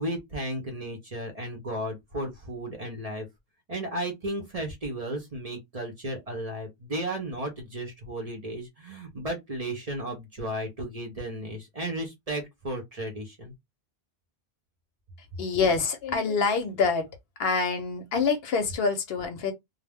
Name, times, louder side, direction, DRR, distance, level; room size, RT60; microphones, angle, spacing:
voice 1, 0.0-3.3 3.7-13.5, right 1 dB, 40° right, 0.6 m, -34 dB
voice 2, 15.4-17.1 17.4-19.5, left 5 dB, 65° left, 0.8 m, -26 dB
2.3 x 2.0 x 3.4 m
omnidirectional pair, 1.2 m